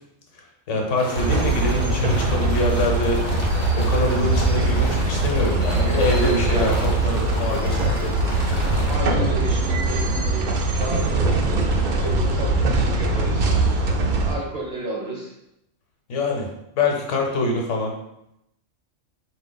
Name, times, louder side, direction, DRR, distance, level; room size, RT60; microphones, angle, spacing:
voice 1, 0.7-3.2 3.7-8.2 16.1-16.5 16.8-17.9, left 1 dB, 75° left, 0 dB, 1.1 m, -24 dB
sound 1, 1.0-9.0, left 2 dB, 35° left, 0.5 m, -34 dB
sound 2, 1.2-14.3, right 2 dB, 60° right, 0.5 m, -22 dB
voice 2, 5.7-6.9 8.9-11.5 11.9-13.5 14.2-15.3, right 1 dB, 40° right, -3 dB, 0.8 m, -31 dB
4.2 x 2.5 x 3.9 m, 0.82 s
omnidirectional pair, 1.3 m